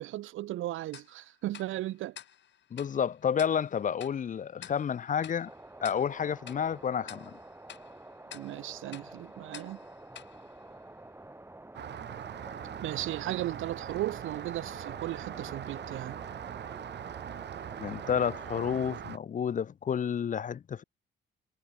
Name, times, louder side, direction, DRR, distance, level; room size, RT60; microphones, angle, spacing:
voice 1, 0.0-2.2 8.3-9.8 12.8-16.2, right 15 dB, 80° right, 1.1 m, -36 dB
Tick-tock, 0.9-11.4, left 10 dB, 65° left, 6.9 m, -52 dB
voice 2, 2.7-5.5 5.8-7.4 17.8-20.8, left 8 dB, 40° left, 0.7 m, -30 dB
sound 1, 5.5-18.8, right 2 dB, 10° right, 7.3 m, -49 dB
Rain, 11.7-19.2, right 9 dB, 60° right, 3.1 m, -41 dB
cardioid pair, 90°, 20 cm